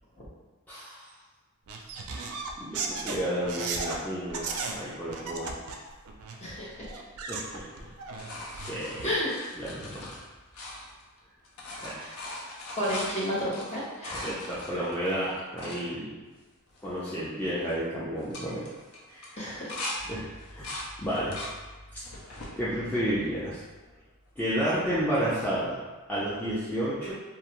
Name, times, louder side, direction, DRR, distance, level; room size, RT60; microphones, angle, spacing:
voice 1, 0.7-1.1 2.6-5.6 7.3-7.9 8.5-9.1 9.5-10.1 11.8-12.1 14.2-16.2 16.8-18.7 19.1-19.5 20.0-20.3 20.5-20.7 21.0-21.4 21.9-22.0 22.6-23.6 24.4-25.8 26.1-27.1, equal, 5° left, -11 dB, 0.4 m, -31 dB
sound 1, 1.7-4.0 4.3-4.8 5.1-6.4 6.8-9.1, right 4 dB, 75° right, 0.3 m, -36 dB
voice 2, 6.4-6.7 9.0-9.3 12.8-14.3 19.4-19.8, equal, 30° left, -8 dB, 0.8 m, -31 dB
sound 2, 7.5-11.2 11.4-15.8 16.4-16.5 16.7-17.1 17.4-17.8 18.2-20.0 20.4-21.6 22.0-22.6 23.2-23.9 25.5-25.6, left 1 dB, 80° left, 0.5 m, -40 dB
2.4 x 2.2 x 2.9 m, 1.3 s
head